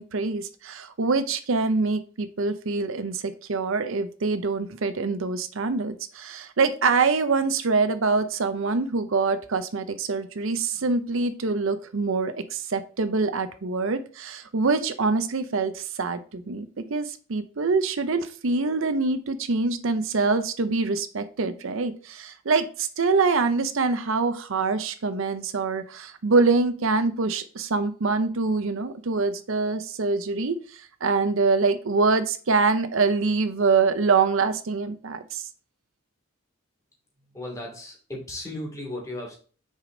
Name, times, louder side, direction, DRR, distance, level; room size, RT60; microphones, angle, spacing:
voice 1, 0.0-35.4, right 4 dB, 70° right, 11 dB, 0.6 m, -25 dB
voice 2, 37.3-39.4, left 1 dB, 15° left, -2 dB, 2.6 m, -35 dB
6.5 x 5.0 x 3.8 m, 0.40 s
head